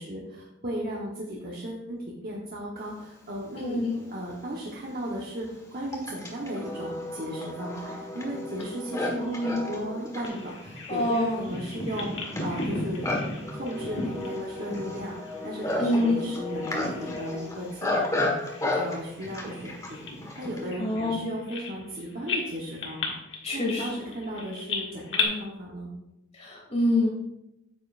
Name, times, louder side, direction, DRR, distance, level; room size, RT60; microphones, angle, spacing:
voice 1, 0.0-12.1 12.4-13.1 13.5-15.1 15.4-20.1 20.4-23.2 23.5-25.9, equal, 50° right, -4 dB, 1.1 m, -35 dB
voice 2, 3.5-4.0 9.1-9.7 10.9-11.5 15.8-16.3 20.8-21.3 23.4-24.0 26.3-27.1, left 1 dB, 35° left, -3 dB, 2.8 m, -26 dB
Livestock farm animals working animals, 3.9-4.0 4.8-20.7, left 1 dB, 15° left, 1.5 m, -33 dB
Bird vocalization bird call bird song, 10.2-16.2 16.5-17.4 17.7-17.9 18.5-21.9 22.3-25.2, left 3 dB, 65° left, 1.6 m, -35 dB
9.2 x 7.5 x 2.5 m, 0.90 s
head